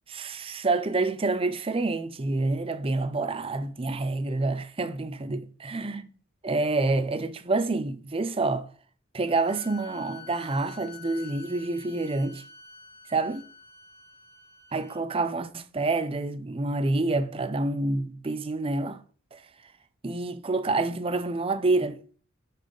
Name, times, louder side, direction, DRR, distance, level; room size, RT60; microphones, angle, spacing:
voice 1, 0.1-6.1 6.4-8.7 9.1-12.4 13.1-13.4 14.7-19.0 19.3-19.7 20.0-22.0, right 3 dB, 25° right, 0.5 m, -28 dB
sound 1, 9.3-15.0, left 6 dB, 55° left, 3.4 m, -48 dB
6.4 x 5.5 x 3.8 m
head